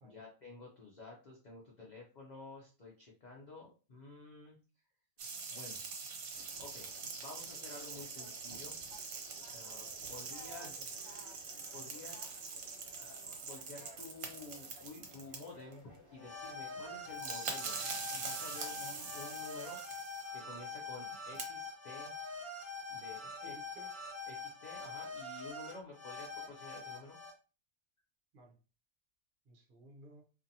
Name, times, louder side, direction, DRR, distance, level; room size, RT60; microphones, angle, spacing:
voice 1, 0.0-4.6 5.5-5.8 6.6-6.9 7.2-8.8 9.3-10.9 11.7-12.3 12.9-22.1 22.9-23.5 24.3-27.2, left 3 dB, 65° left, -1 dB, 0.4 m, -51 dB
sound 1, 5.2-15.7 16.8-16.9 17.0-20.3 21.1-21.4, right 5 dB, 70° right, 1.0 m, -44 dB
Conversation, 6.3-19.4, left 1 dB, 45° left, 1.2 m, -58 dB
sound 2, 16.2-27.3, left 3 dB, 25° right, 0.9 m, -44 dB
voice 2, 23.4-23.9 28.3-28.5 29.5-30.3, right 2 dB, 50° right, 1 dB, 0.7 m, -57 dB
2.7 x 2.5 x 2.5 m, 0.34 s
omnidirectional pair, 1.5 m